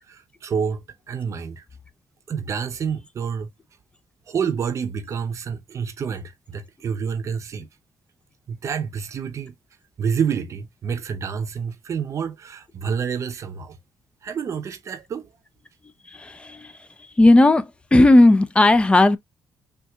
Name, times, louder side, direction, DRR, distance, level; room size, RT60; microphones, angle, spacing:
voice 1, 0.1-1.6 2.3-3.5 4.3-7.7 8.5-9.5 10.0-13.8 14.2-15.3, right 6 dB, 50° right, 0.7 m, -28 dB
voice 2, 16.1-16.7 17.2-19.2, left 2 dB, 15° left, 0.5 m, -15 dB
4.4 x 2.5 x 2.3 m
cardioid pair, 100°, 7 cm